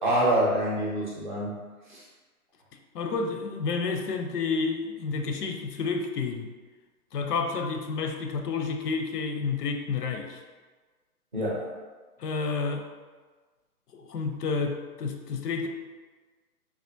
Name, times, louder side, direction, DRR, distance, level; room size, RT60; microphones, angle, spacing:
voice 1, 0.0-1.5 1.9-2.0 11.3-11.7, right 1 dB, 35° right, -6 dB, 0.6 m, -26 dB
voice 2, 2.9-6.5 7.1-10.4 12.2-12.9 13.9-15.7, left 4 dB, 85° left, 5 dB, 0.6 m, -30 dB
3.4 x 2.4 x 2.6 m, 1.3 s
hypercardioid pair, 175°, 46 cm